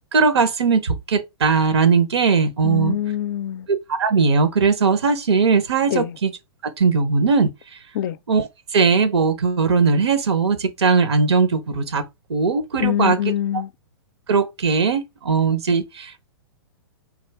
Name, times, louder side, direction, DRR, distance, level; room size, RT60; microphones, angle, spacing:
voice 1, 0.1-3.0 3.7-6.3 6.8-7.5 8.3-12.0 12.3-13.2 13.5-13.6 14.3-16.3, right 5 dB, 80° right, 0.8 m, -19 dB
voice 2, 2.6-3.7 5.9-6.2 7.9-8.2 12.8-13.7, left 11 dB, 50° left, 0.4 m, -24 dB
3.8 x 2.6 x 3.3 m
hypercardioid pair, 115°, 14 cm